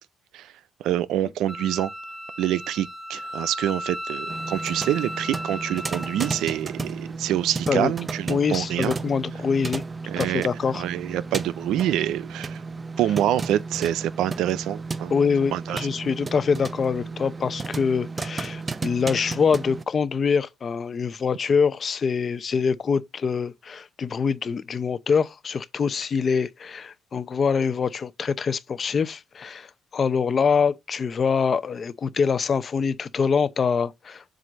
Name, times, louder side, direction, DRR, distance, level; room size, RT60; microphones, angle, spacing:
voice 1, 0.8-1.9 2.4-8.9 10.1-10.5 10.7-12.6 13.0-15.1 15.5-15.8, right 12 dB, 85° right, 0.4 m, -26 dB
Wind instrument woodwind instrument, 1.5-6.6, equal, 5° left, 1.6 m, -35 dB
sound 1, 4.3-19.8, right 4 dB, 30° right, 0.6 m, -34 dB
voice 2, 8.3-9.8 10.2-10.8 15.1-34.2, left 6 dB, 45° left, 0.6 m, -24 dB
7.6 x 2.6 x 5.1 m
cardioid pair, 90°, 0 cm